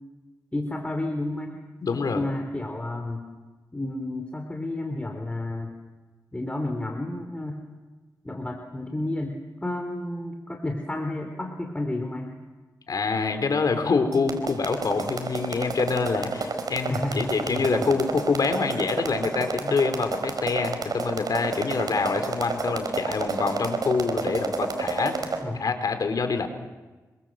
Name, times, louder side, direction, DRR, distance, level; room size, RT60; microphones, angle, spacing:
voice 1, 0.5-1.6 1.9-3.3 3.7-5.8 6.3-7.6 8.2-12.3 16.9-18.0 25.4-25.8, left 1 dB, 15° left, 4 dB, 3.7 m, -31 dB
voice 2, 1.8-2.2 12.9-26.5, left 4 dB, 65° left, 7 dB, 4.3 m, -26 dB
sound 1, 14.1-25.4, right 4 dB, 65° right, 4.8 m, -29 dB
27.5 x 24.5 x 7.8 m, 1.2 s
cardioid pair, 70°, 7 cm